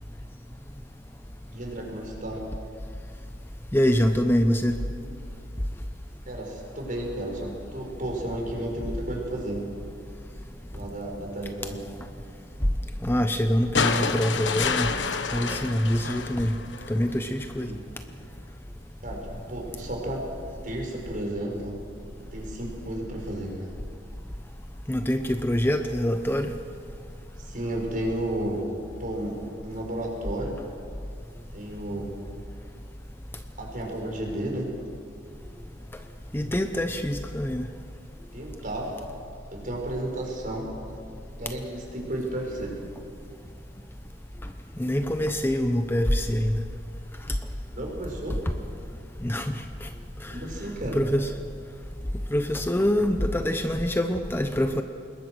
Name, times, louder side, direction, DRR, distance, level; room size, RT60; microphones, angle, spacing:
voice 1, 1.5-2.5 6.3-9.6 10.7-11.8 17.6-17.8 19.0-20.2 20.6-21.8 22.3-23.7 27.4-28.6 29.0-30.6 31.5-32.1 33.6-34.8 38.3-38.9 39.5-40.7 41.4-42.8 47.7-48.4 50.3-51.0, right 1 dB, 50° right, 0 dB, 6.0 m, -33 dB
voice 2, 3.7-4.8 13.0-14.9 15.3-16.5 16.9-17.7 24.9-26.5 36.3-37.7 44.8-46.6 49.2-49.5 49.8-49.9 50.2-50.3 50.9-51.3 52.3-54.8, equal, 15° left, 7 dB, 0.8 m, -25 dB
sound 1, 13.7-17.0 18.4-18.5, left 5 dB, 85° left, 1.3 m, -28 dB
26.5 x 21.5 x 6.4 m, 2.3 s
head